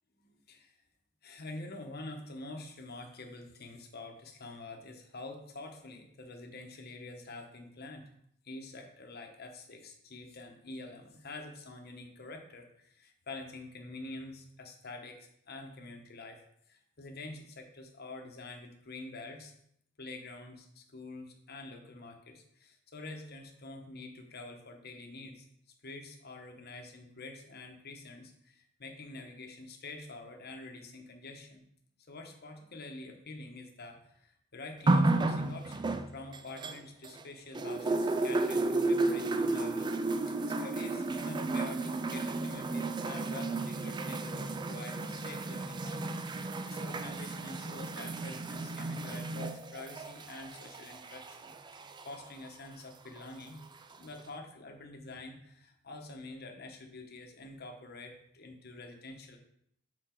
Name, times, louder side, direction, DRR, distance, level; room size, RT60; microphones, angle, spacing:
voice 1, 0.2-0.8 1.2-8.1 8.4-16.4 16.7-19.5 20.0-25.5 25.8-31.6 32.1-40.0 40.2-53.6 53.9-59.4, left 2 dB, 50° left, 3 dB, 1.1 m, -47 dB
sound 1, 34.9-37.2 37.6-52.3 53.2-53.3, right 2 dB, 20° right, 0.3 m, -33 dB
6.9 x 4.3 x 4.5 m, 0.72 s
head